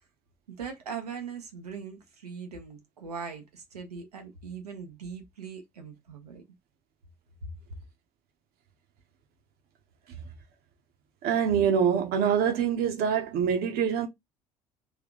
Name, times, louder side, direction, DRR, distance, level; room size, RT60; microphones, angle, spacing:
voice 1, 0.5-6.4 7.4-7.5, right 6 dB, 80° right, 1.0 m, -40 dB
voice 2, 11.2-14.1, right 7 dB, 50° right, 1.1 m, -25 dB
3.5 x 3.3 x 3.8 m
figure-of-eight pair, 55°, 20 cm